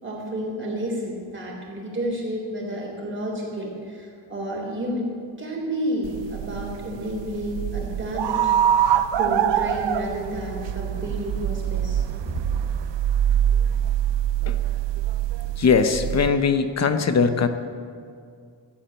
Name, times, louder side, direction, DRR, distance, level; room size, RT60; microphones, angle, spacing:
voice 1, 0.0-5.0 5.4-12.3, equal, 25° right, -1 dB, 3.7 m, -31 dB
sound 1, 6.0-16.3, right 10 dB, 65° right, 0.7 m, -24 dB
voice 2, 15.6-17.5, left 5 dB, 35° left, 9 dB, 0.9 m, -20 dB
15.0 x 8.6 x 8.6 m, 2.2 s
cardioid pair, 145°, 46 cm